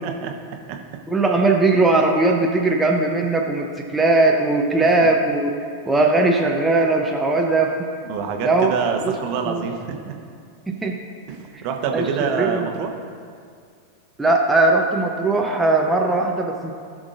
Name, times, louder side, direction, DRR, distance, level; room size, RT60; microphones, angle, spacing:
voice 1, 0.0-0.3 0.7-0.8 4.8-4.9 8.0-10.1 11.3-12.9, right 6 dB, 45° right, 3 dB, 1.1 m, -26 dB
voice 2, 1.1-5.5 5.8-7.8 8.4-8.7 9.0-9.1 9.4-9.7 10.7-11.0 11.9-12.7 14.2-16.7, right 2 dB, 10° right, 0 dB, 0.8 m, -19 dB
17.5 x 6.1 x 2.6 m, 2.2 s
figure-of-eight pair, 90°, 0 cm